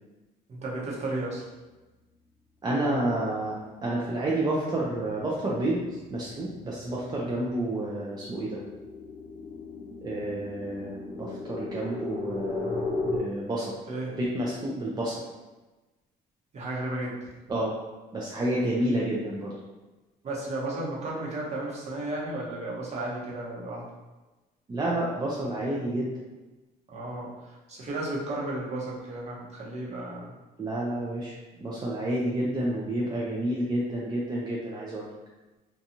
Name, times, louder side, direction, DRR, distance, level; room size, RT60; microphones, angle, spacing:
voice 1, 0.5-1.4 13.9-14.1 16.5-17.1 20.2-23.8 26.9-30.3, right 2 dB, 40° right, -4 dB, 0.9 m, -34 dB
voice 2, 2.6-5.8 6.1-8.6 10.0-13.7 14.2-15.2 17.5-17.7 18.1-19.5 24.7-26.1 30.6-31.3 31.6-35.1, right 1 dB, 25° right, -5 dB, 0.4 m, -29 dB
sound 1, 5.1-13.2, left 3 dB, 30° left, 0.7 m, -37 dB
2.6 x 2.2 x 2.9 m, 1.1 s
cardioid pair, 110°, 17 cm